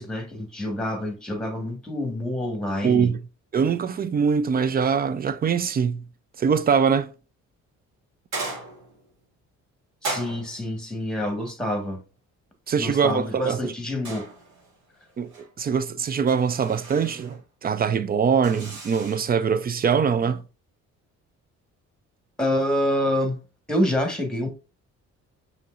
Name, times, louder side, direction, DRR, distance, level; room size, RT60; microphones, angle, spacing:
voice 1, 0.0-3.1 10.0-12.0 12.8-14.3 22.4-23.4 23.7-24.5, left 1 dB, ahead, 1.4 m, -27 dB
voice 2, 2.8-3.2 3.5-6.0 6.4-7.1 12.7-13.7 15.2-20.4, right 6 dB, 30° right, 0.4 m, -23 dB
sound 1, 8.3-9.1 10.0-10.8 14.0-14.8 15.1-15.5 16.3-17.4 18.4-19.3, right 3 dB, 80° right, 2.0 m, -36 dB
5.7 x 3.1 x 2.4 m
cardioid pair, 90°, 30 cm